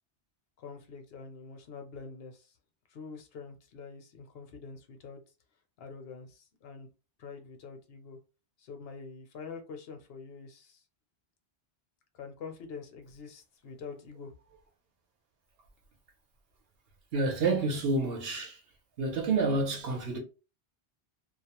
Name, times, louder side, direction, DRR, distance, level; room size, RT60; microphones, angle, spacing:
voice 1, 0.6-2.6 2.9-5.2 5.8-6.9 7.2-8.2 8.6-10.8 12.1-14.3, left 5 dB, 70° left, 0.8 m, -45 dB
voice 2, 17.1-18.6 19.0-20.2, right 3 dB, 70° right, 0.9 m, -29 dB
2.3 x 2.0 x 2.9 m
omnidirectional pair, 1.1 m